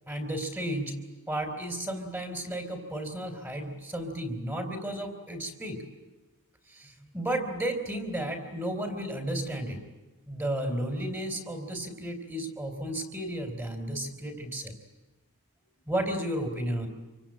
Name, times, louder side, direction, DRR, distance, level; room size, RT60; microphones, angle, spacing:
voice 1, 0.1-0.9 1.3-5.8 6.7-9.8 10.3-14.7 15.9-16.9, right 1 dB, 10° right, 5 dB, 3.5 m, -33 dB
27.0 x 24.5 x 8.9 m, 1.2 s
head